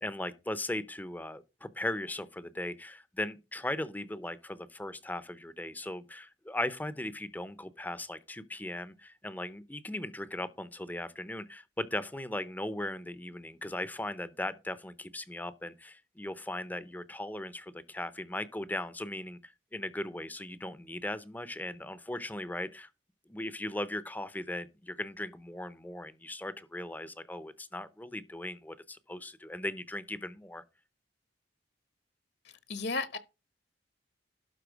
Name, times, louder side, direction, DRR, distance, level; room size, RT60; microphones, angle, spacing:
voice 1, 0.0-22.9 23.3-30.6, left 1 dB, 10° left, 0.6 m, -38 dB
voice 2, 32.4-33.2, left 3 dB, 60° left, 1.1 m, -34 dB
12.0 x 4.2 x 6.2 m
head